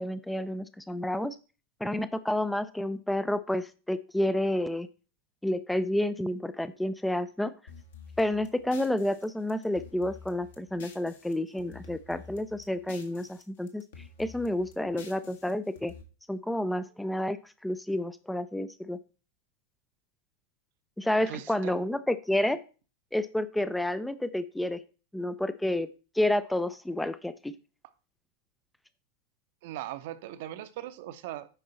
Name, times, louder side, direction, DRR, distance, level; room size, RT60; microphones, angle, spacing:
voice 1, 0.0-1.4 1.8-4.9 5.4-7.5 8.2-13.8 14.2-15.9 16.3-17.4 17.6-19.0 21.0-22.6 23.1-24.8 25.1-25.9 26.2-27.5, left 1 dB, 5° left, 14 dB, 0.5 m, -30 dB
sound 1, 7.7-11.3 11.6-13.4 13.7-16.0, left 5 dB, 60° left, 1.7 m, -49 dB
voice 2, 21.3-21.8 29.6-31.5, right 13 dB, 50° right, 12 dB, 0.8 m, -39 dB
8.9 x 5.4 x 4.2 m, 0.35 s
figure-of-eight pair, 90°, 0 cm